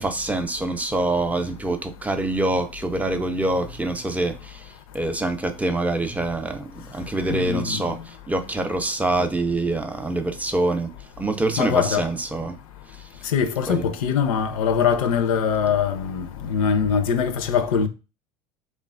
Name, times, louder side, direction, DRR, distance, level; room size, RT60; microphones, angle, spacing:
voice 1, 0.0-4.6 4.9-10.9 11.2-12.6 13.7-13.9, right 2 dB, 10° right, 0.4 m, -25 dB
voice 2, 7.3-8.0 11.6-12.1 13.2-17.9, left 7 dB, 85° left, 0.4 m, -22 dB
3.1 x 2.2 x 2.4 m
hypercardioid pair, 80°, 18 cm